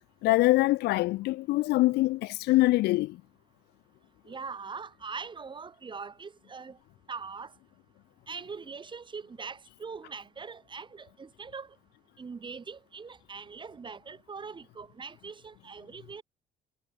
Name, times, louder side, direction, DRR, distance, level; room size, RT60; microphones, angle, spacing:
voice 1, 0.2-3.2, left 19 dB, 80° left, 0.8 m, -24 dB
voice 2, 4.3-6.8 7.1-7.5 8.3-11.8 12.2-16.2, right 5 dB, 30° right, 3.5 m, -42 dB
cardioid pair, 110°, 17 cm